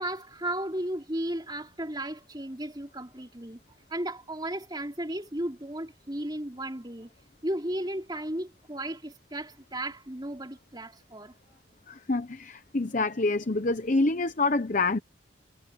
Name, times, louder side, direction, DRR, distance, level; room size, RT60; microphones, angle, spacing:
voice 1, 0.0-3.6 3.9-7.1 7.4-11.3, right 1 dB, 20° right, 3.6 m, -34 dB
voice 2, 11.9-15.0, left 3 dB, 40° left, 0.9 m, -27 dB
head